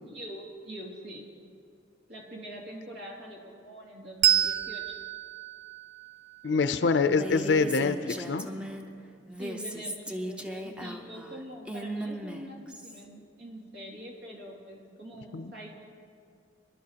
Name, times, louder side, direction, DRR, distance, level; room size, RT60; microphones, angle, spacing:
voice 1, 0.1-1.3 2.1-4.9 6.4-7.0 9.4-15.8, right 1 dB, 75° right, -2 dB, 2.4 m, -44 dB
Bell, 4.2-7.3, right 11 dB, 90° right, 0.5 m, -29 dB
voice 2, 6.4-8.5 15.3-15.5, left 4 dB, 75° left, 10 dB, 0.5 m, -25 dB
Female speech woman speaking, 7.0-8.9 9.3-13.0, equal, 5° right, 0.6 m, -37 dB
23.5 x 11.5 x 2.9 m, 2.3 s
head